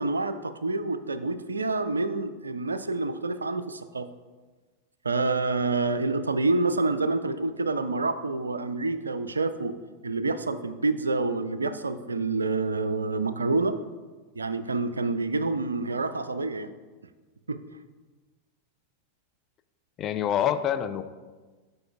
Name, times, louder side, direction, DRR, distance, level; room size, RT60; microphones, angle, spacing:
voice 1, 0.0-4.1 5.0-9.7 10.0-13.8 14.4-16.7 17.5-17.6, right 3 dB, 75° right, 12 dB, 0.3 m, -27 dB
voice 2, 20.0-21.0, left 10 dB, 30° left, 9 dB, 0.4 m, -26 dB
11.0 x 5.3 x 2.3 m, 1.3 s
figure-of-eight pair, 90°, 0 cm